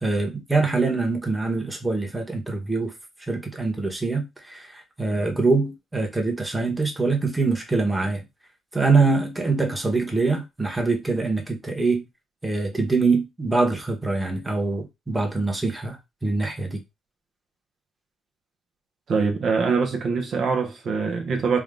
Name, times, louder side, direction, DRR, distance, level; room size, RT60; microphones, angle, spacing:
voice 1, 0.0-2.9 3.3-8.2 8.7-12.0 12.4-16.8, right 3 dB, 10° right, 1.2 m, -24 dB
voice 2, 19.1-21.6, right 5 dB, 55° right, 0.9 m, -23 dB
3.6 x 2.4 x 3.7 m
cardioid pair, 90°, 0 cm